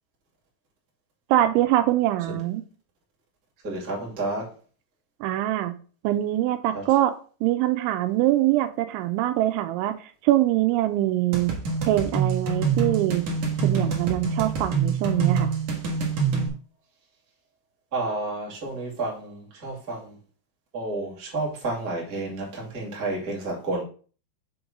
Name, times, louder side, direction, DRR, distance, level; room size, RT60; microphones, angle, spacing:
voice 1, 1.3-2.6 5.2-5.7 6.0-7.1 7.4-9.9 10.2-11.5 11.9-13.3 13.6-15.5, right 14 dB, 85° right, 3.1 m, -23 dB
voice 2, 3.6-4.5 6.7-6.8 17.9-20.2 20.7-23.8, right 2 dB, 30° right, 1.9 m, -30 dB
sound 1, 11.3-16.5, right 5 dB, 60° right, 2.1 m, -26 dB
6.9 x 4.0 x 5.9 m
omnidirectional pair, 5.4 m